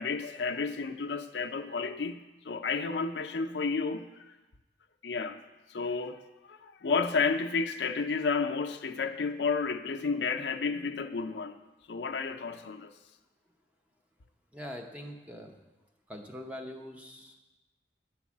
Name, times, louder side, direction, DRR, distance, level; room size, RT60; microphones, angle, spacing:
voice 1, 0.0-2.2 2.4-4.3 5.0-5.4 5.7-11.6 11.9-12.9, left 4 dB, 90° left, 6 dB, 0.5 m, -31 dB
voice 2, 14.5-15.6 16.1-17.4, left 1 dB, 10° right, 3 dB, 0.7 m, -43 dB
9.4 x 4.7 x 7.2 m, 1.1 s
head